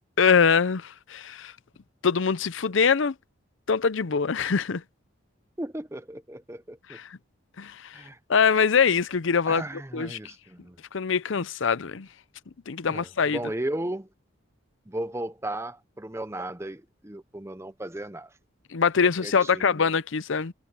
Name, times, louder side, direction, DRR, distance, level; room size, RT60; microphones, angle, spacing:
voice 1, 0.2-1.5 2.0-3.1 3.7-4.8 6.9-7.1 7.6-8.0 8.3-9.6 9.9-10.2 10.9-12.1 12.7-13.4 18.7-20.5, left 6 dB, 65° left, 0.6 m, -23 dB
voice 2, 5.6-7.0 7.9-8.2 9.5-10.8 12.9-14.1 14.9-18.3 19.2-19.7, right 1 dB, 15° right, 0.7 m, -35 dB
head